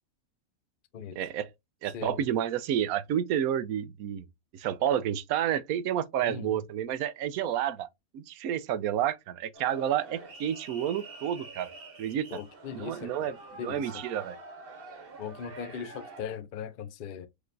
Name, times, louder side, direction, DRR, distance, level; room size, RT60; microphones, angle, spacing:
voice 1, 1.2-1.5 1.8-4.2 4.5-7.9 8.1-11.7 12.0-12.2 12.7-13.3 13.6-14.4, right 10 dB, 85° right, 1.0 m, -30 dB
voice 2, 1.9-2.3 6.2-6.6 12.3-13.3 13.6-14.0 15.2-17.3, left 7 dB, 55° left, 0.6 m, -39 dB
sound 1, 9.5-16.2, right 3 dB, 45° right, 1.2 m, -46 dB
4.9 x 3.3 x 2.5 m
omnidirectional pair, 1.5 m